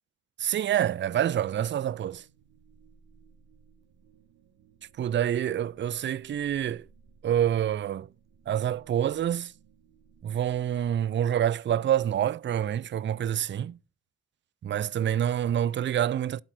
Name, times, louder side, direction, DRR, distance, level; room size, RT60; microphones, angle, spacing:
voice 1, 0.4-2.2 5.0-6.9 7.2-8.1 8.5-9.5 10.2-13.8 14.6-16.4, right 10 dB, 30° right, 0.4 m, -27 dB
sound 1, 2.0-10.9, right 5 dB, 65° right, 1.4 m, -60 dB
12.0 x 4.1 x 5.9 m
hypercardioid pair, 45°, 41 cm